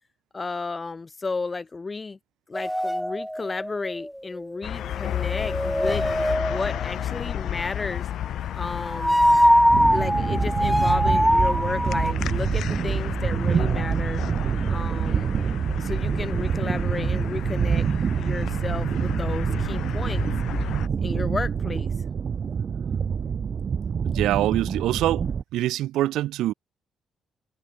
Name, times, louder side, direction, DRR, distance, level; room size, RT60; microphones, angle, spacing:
voice 1, 0.3-2.2 2.5-6.1 6.4-8.1 8.5-9.2 9.9-14.2 14.7-15.4 15.8-17.9 18.2-20.2 21.0-21.9, left 4 dB, 25° left, 4.8 m, -33 dB
sound 1, 2.5-4.5 5.0-7.0 8.9-12.1, equal, ahead, 0.3 m, -22 dB
sound 2, 4.6-20.9, left 11 dB, 75° left, 3.1 m, -33 dB
sound 3, 9.7-25.4, right 7 dB, 50° right, 0.9 m, -26 dB
voice 2, 24.1-25.2 25.5-26.5, right 14 dB, 85° right, 1.5 m, -24 dB
cardioid pair, 90°, 0 cm